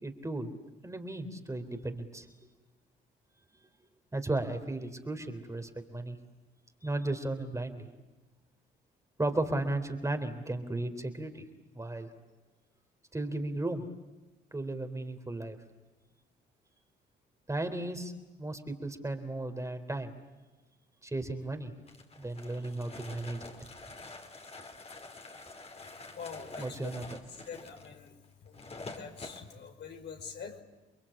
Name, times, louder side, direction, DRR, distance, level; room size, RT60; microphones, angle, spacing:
voice 1, 0.0-0.5 0.8-2.3 4.1-6.2 6.8-7.9 9.2-11.5 11.7-12.1 13.1-13.8 14.5-15.6 17.5-18.1 18.4-20.1 21.0-21.7 22.2-23.4 26.6-27.2, right 2 dB, 15° right, 6 dB, 3.6 m, -35 dB
sound 1, 21.9-29.4, left 3 dB, 30° left, 4.2 m, -47 dB
voice 2, 26.2-26.8 27.4-28.2 28.4-28.7 29.0-30.6, left 6 dB, 60° left, 4 dB, 5.2 m, -45 dB
29.5 x 22.0 x 8.8 m, 1.1 s
cardioid pair, 90°, 20 cm